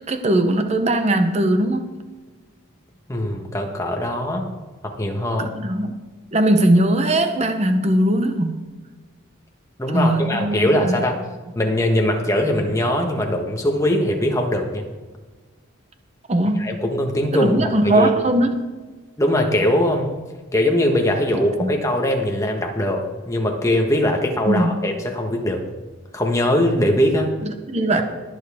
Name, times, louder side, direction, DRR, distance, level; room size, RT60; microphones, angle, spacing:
voice 1, 0.1-1.9 5.4-6.0 6.3-8.6 9.9-10.9 16.3-16.7 17.3-18.7 21.6-21.7 24.5-24.9 27.4-28.0, right 1 dB, 30° right, 7 dB, 0.9 m, -19 dB
voice 2, 3.1-4.5 4.8-5.5 9.8-11.2 11.5-14.9 16.6-18.1 19.2-20.1 20.5-25.6 26.1-27.3, left 1 dB, 15° left, 2 dB, 1.4 m, -21 dB
21.5 x 7.3 x 3.6 m, 1.3 s
head